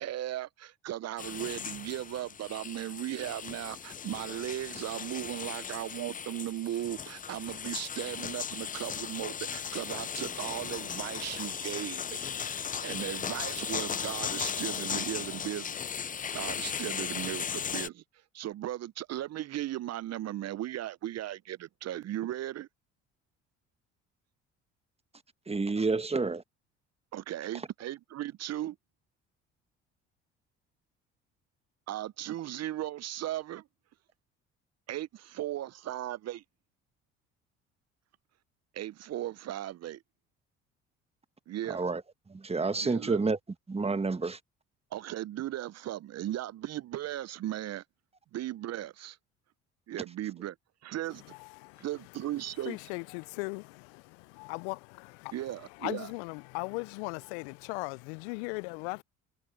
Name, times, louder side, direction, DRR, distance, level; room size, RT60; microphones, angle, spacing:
voice 1, 0.0-12.2 12.8-15.8 16.3-18.0 18.3-22.7 27.1-28.8 31.9-33.6 34.9-36.4 38.7-40.0 41.5-41.8 42.8-43.2 44.9-47.8 48.3-49.2 49.9-50.5 50.8-51.2 51.8-52.8 55.3-56.1, right 13 dB, 50° right, 0.8 m, -37 dB
sound 1, 1.2-17.9, left 7 dB, 25° left, 0.6 m, -37 dB
voice 2, 25.5-26.4 41.7-42.0 42.3-43.4 43.7-44.4, right 3 dB, 20° right, 1.4 m, -29 dB
voice 3, 52.7-54.0 54.3-55.3 55.8-59.0, left 31 dB, 75° left, 0.5 m, -38 dB
hypercardioid pair, 60°, 34 cm